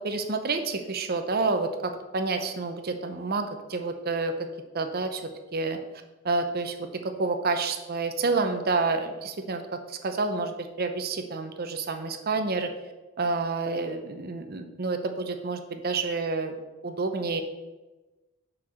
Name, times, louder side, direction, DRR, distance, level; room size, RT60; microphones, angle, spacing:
voice 1, 0.0-4.3 4.7-5.2 5.5-5.8 6.2-12.7 13.2-16.6 16.8-17.4, right 3 dB, 45° right, 7 dB, 0.7 m, -29 dB
6.0 x 4.6 x 6.2 m, 1.1 s
head